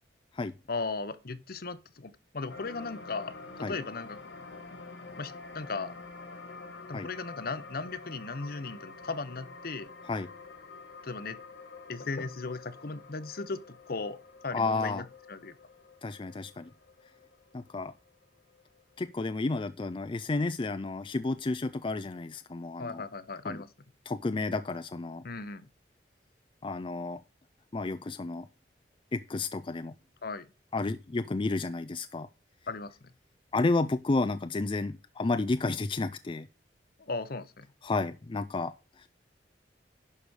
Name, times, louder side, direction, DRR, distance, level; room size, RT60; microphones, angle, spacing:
voice 1, 0.7-3.4 3.7-4.2 5.2-5.9 6.9-9.9 11.0-11.4 11.9-14.2 14.4-15.5 22.8-23.7 25.2-25.7 30.2-30.4 32.7-33.1 37.0-37.7, left 3 dB, 55° left, 0.9 m, -37 dB
sound 1, 2.5-19.0 19.4-19.5, left 3 dB, 75° left, 2.0 m, -48 dB
voice 2, 14.5-15.0 16.0-16.7 17.5-17.9 19.0-23.0 23.5-23.6 24.1-25.2 26.6-27.2 27.7-28.5 29.1-29.9 30.7-32.3 33.5-36.5 37.8-39.1, left 3 dB, 30° left, 0.4 m, -31 dB
11.0 x 5.0 x 6.3 m
head